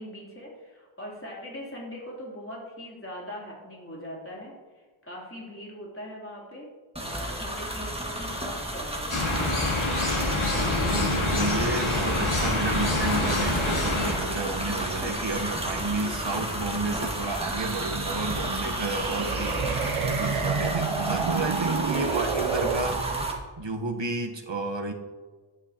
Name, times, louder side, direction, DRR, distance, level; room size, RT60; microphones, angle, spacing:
voice 1, 0.0-4.5 5.0-6.7 7.0-9.8 15.3-16.5 19.2-19.6 22.0-22.3, equal, 25° left, -4 dB, 3.2 m, -41 dB
sound 1, 7.0-23.3, right 1 dB, 10° right, 1.8 m, -32 dB
sound 2, 9.1-14.1, left 2 dB, 75° left, 2.1 m, -26 dB
voice 2, 10.6-23.2 23.6-24.9, right 3 dB, 60° right, 3 dB, 1.2 m, -31 dB
sound 3, 17.4-23.4, right 6 dB, 85° right, 0.7 m, -30 dB
12.0 x 9.3 x 2.9 m, 1.4 s
wide cardioid pair, 50°, 49 cm